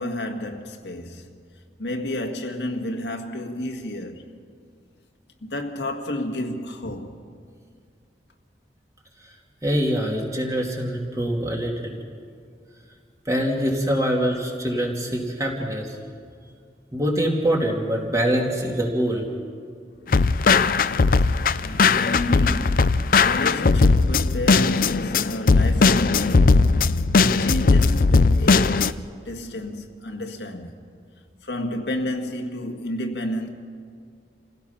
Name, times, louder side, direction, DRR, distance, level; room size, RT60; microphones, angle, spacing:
voice 1, 0.0-1.4 1.8-4.4 5.4-7.4 21.6-26.9 27.2-30.7 31.4-33.5, left 1 dB, 80° left, 1.7 m, -31 dB
voice 2, 9.6-12.0 13.3-15.9 16.9-19.2, equal, 20° right, 2.7 m, -24 dB
sound 1, 20.1-28.9, left 4 dB, 50° left, 0.5 m, -18 dB
27.5 x 16.5 x 5.8 m
head